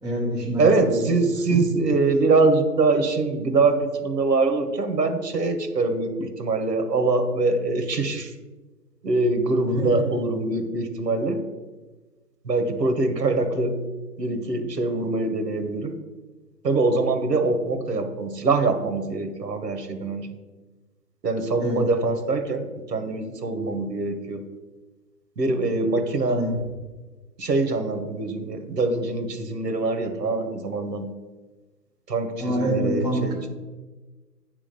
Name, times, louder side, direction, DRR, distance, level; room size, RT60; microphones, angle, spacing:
voice 1, 0.0-1.2 9.8-10.0 21.6-21.8 26.2-26.7 32.4-33.6, right 1 dB, ahead, -21 dB, 0.8 m, -26 dB
voice 2, 0.6-8.3 9.0-11.4 12.4-13.8 14.2-15.9 16.6-20.3 21.2-24.4 25.4-26.4 27.4-31.1 32.1-33.4, right 3 dB, 80° right, 7 dB, 1.6 m, -23 dB
9.8 x 3.8 x 6.8 m, 1.3 s
hypercardioid pair, 165°, 49 cm